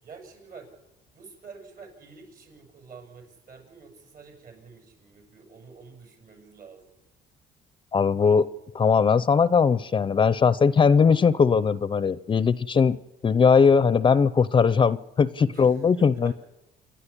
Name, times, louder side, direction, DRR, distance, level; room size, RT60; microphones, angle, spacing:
voice 1, 0.0-0.7 1.1-6.9 15.5-16.3, right 5 dB, 55° right, 4 dB, 7.2 m, -48 dB
voice 2, 7.9-8.5 8.7-13.0 13.2-16.3, left 6 dB, 30° left, 17 dB, 0.6 m, -20 dB
27.5 x 11.5 x 9.9 m, 0.95 s
cardioid pair, 110°, 17 cm